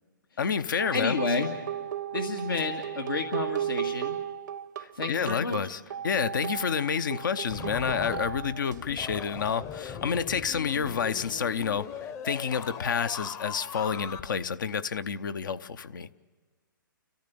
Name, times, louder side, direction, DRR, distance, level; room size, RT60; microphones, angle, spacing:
voice 1, 0.4-1.2 4.8-16.1, left 6 dB, 65° left, 12 dB, 0.8 m, -29 dB
sound 1, 0.8-8.8 10.7-10.9, right 10 dB, 60° right, 0.7 m, -35 dB
voice 2, 0.9-1.5 2.1-4.2 4.9-5.6, left 4 dB, 85° left, 3 dB, 2.0 m, -30 dB
sound 2, 7.5-14.2, left 7 dB, 20° left, 0.8 m, -40 dB
30.0 x 14.5 x 6.9 m, 1.4 s
hypercardioid pair, 130°, 11 cm